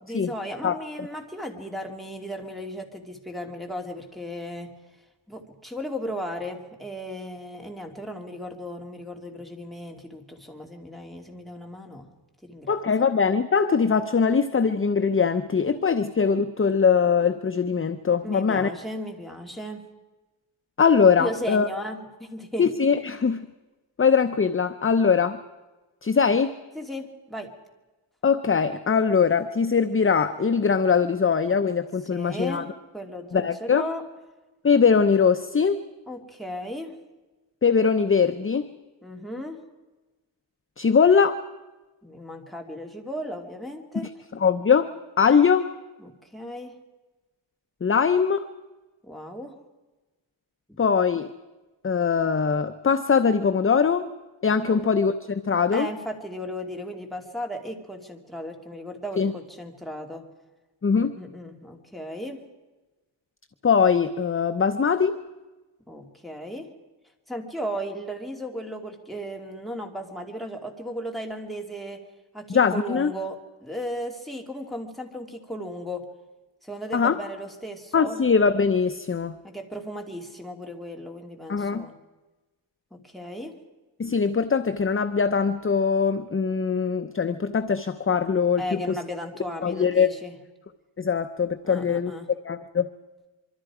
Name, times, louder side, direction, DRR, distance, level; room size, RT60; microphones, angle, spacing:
voice 1, 0.0-4.7 5.3-12.1 12.4-12.7 18.2-19.9 21.2-22.7 26.7-27.5 32.1-34.0 36.1-37.0 39.0-39.6 42.0-44.1 46.0-46.8 49.0-49.5 50.7-50.8 54.6-54.8 55.7-60.3 60.9-62.4 65.9-66.7 67.3-72.0 72.3-76.1 76.6-78.2 79.4-81.9 83.0-83.6 88.6-90.3 91.6-92.3, equal, ahead, 1 dB, 2.6 m, -36 dB
voice 2, 0.6-1.1 12.7-18.7 20.8-21.7 22.6-23.5 24.0-25.4 26.0-26.5 28.2-32.6 33.3-33.8 34.6-35.9 37.6-38.7 40.8-41.4 44.0-44.9 45.2-45.7 47.8-48.5 50.8-51.3 51.8-54.1 54.4-55.9 59.2-59.3 60.8-61.1 63.6-65.2 72.5-73.1 76.9-77.2 77.9-79.4 81.5-81.9 84.0-89.0 89.6-90.1 91.0-92.1 92.4-92.9, left 6 dB, 25° left, 9 dB, 0.7 m, -22 dB
25.5 x 24.0 x 4.9 m, 1.2 s
wide cardioid pair, 150°, 48 cm